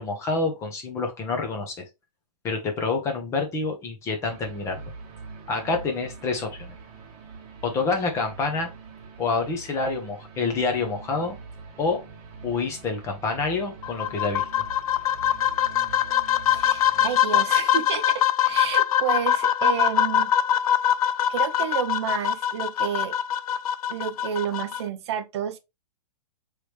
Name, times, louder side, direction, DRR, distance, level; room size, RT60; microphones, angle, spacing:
voice 1, 0.0-1.8 2.4-4.9 5.5-6.7 7.6-8.7 9.2-11.3 11.8-12.0 12.4-14.5, left 4 dB, 15° left, 0.8 m, -27 dB
sound 1, 4.2-17.2, right 4 dB, 25° right, 1.4 m, -43 dB
sound 2, 13.8-24.8, left 10 dB, 60° left, 0.5 m, -23 dB
voice 2, 16.5-20.3 21.3-23.1 23.9-25.6, right 9 dB, 40° right, 0.7 m, -30 dB
4.7 x 3.2 x 3.2 m
hypercardioid pair, 160°, 21 cm